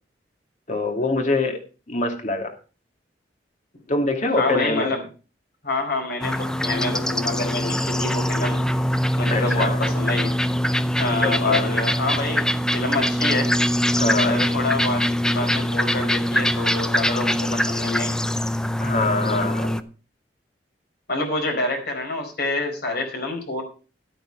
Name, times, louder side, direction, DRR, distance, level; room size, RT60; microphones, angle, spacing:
voice 1, 0.7-1.6 1.9-2.5 3.9-4.9 9.3-9.8 11.1-11.6 14.0-14.4 18.8-19.8, left 2 dB, 45° left, 4 dB, 2.5 m, -24 dB
voice 2, 4.4-5.0 5.6-8.6 9.2-10.3 11.0-13.5 14.2-18.2 19.2-19.8 21.1-23.6, left 2 dB, 60° left, 3 dB, 4.5 m, -27 dB
sound 1, 6.2-19.8, equal, 5° left, 0.5 m, -23 dB
12.5 x 9.0 x 4.7 m, 0.35 s
head